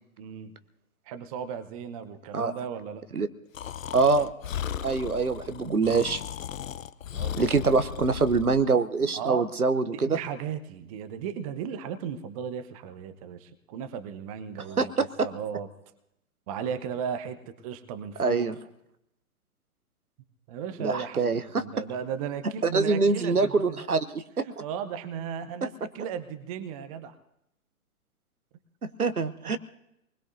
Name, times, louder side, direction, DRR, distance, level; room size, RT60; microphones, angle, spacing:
voice 1, 0.2-0.6 1.1-3.1 7.1-7.8 9.1-9.4 9.9-15.7 16.5-18.5 20.5-23.8 24.4-27.1 29.4-29.5, right 7 dB, 25° right, 12 dB, 0.8 m, -36 dB
Breathing, 3.5-8.7, left 9 dB, 65° left, 0.7 m, -36 dB
voice 2, 3.9-4.3 4.8-6.2 7.4-10.2 14.8-15.3 18.2-18.5 20.8-21.8 22.7-24.4 28.8-29.6, right 4 dB, 90° right, 11 dB, 0.9 m, -25 dB
26.5 x 20.5 x 2.7 m, 0.80 s
figure-of-eight pair, 120°, 43 cm